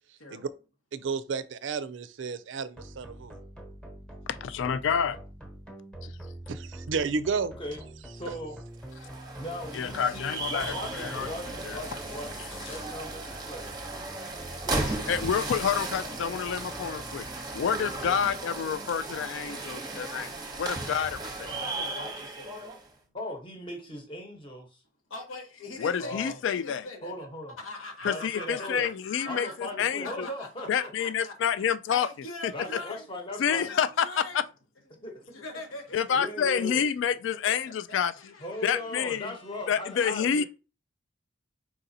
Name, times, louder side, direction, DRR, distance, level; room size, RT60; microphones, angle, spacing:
voice 1, 0.9-3.4 6.5-7.6, right 5 dB, 65° right, 0.4 m, -32 dB
sound 1, 2.8-18.4, right 1 dB, 5° left, 1.0 m, -45 dB
voice 2, 4.4-5.2 6.0-6.1 9.7-11.3 11.6-11.8 15.1-17.3 17.5-21.5 25.8-26.8 28.0-30.3 30.7-32.1 32.4-32.5 33.4-34.4 35.9-38.3 38.6-39.3 39.7-40.4, left 7 dB, 65° left, 0.3 m, -28 dB
voice 3, 8.1-8.6 9.4-13.8 14.5-15.0 23.1-24.8 26.0-26.4 27.0-27.5 28.0-28.9 29.3-30.9 32.5-33.7 35.0-35.4 36.1-36.9 38.4-40.4, left 1 dB, 25° left, 1.0 m, -38 dB
sound 2, 8.8-22.9, right 2 dB, 20° right, 0.8 m, -36 dB
voice 4, 21.5-22.8 25.1-27.1 27.6-28.7 29.0-29.5 29.8-31.3 31.9-33.0 33.5-34.4 34.9-35.1 35.3-36.2 37.5-37.8 38.2-40.1, left 2 dB, 80° left, 1.3 m, -43 dB
4.8 x 3.9 x 2.7 m
head